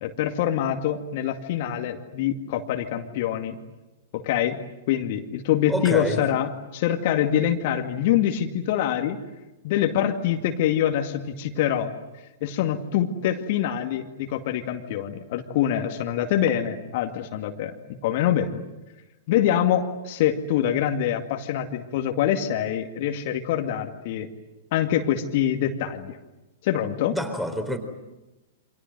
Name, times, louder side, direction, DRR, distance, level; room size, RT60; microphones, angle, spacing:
voice 1, 0.0-3.6 4.1-4.6 4.9-9.2 9.6-11.9 12.4-17.7 18.0-18.6 19.3-24.3 24.7-26.2 26.6-27.2, left 10 dB, 45° left, 5 dB, 2.2 m, -25 dB
voice 2, 5.7-6.2 27.1-27.8, left 1 dB, ahead, 8 dB, 4.2 m, -27 dB
28.5 x 26.5 x 7.9 m, 1.0 s
figure-of-eight pair, 105°, 0 cm